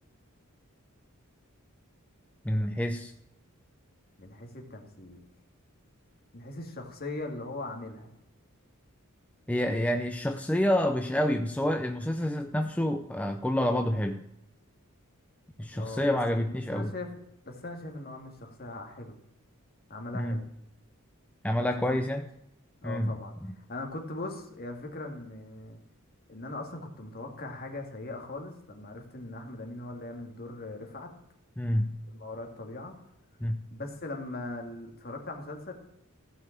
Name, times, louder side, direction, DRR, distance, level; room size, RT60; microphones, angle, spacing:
voice 1, 2.4-3.1 9.5-14.2 15.6-16.9 20.1-20.4 21.4-22.3 22.8-23.1 31.6-32.0 33.4-33.6, left 1 dB, 5° left, 5 dB, 0.5 m, -28 dB
voice 2, 4.2-5.2 6.3-8.1 15.7-17.1 17.4-19.2 19.9-20.5 21.6-22.0 22.8-25.8 26.3-31.1 32.1-33.0 33.7-35.7, left 2 dB, 45° left, 2 dB, 2.3 m, -40 dB
15.0 x 5.7 x 7.3 m, 0.82 s
head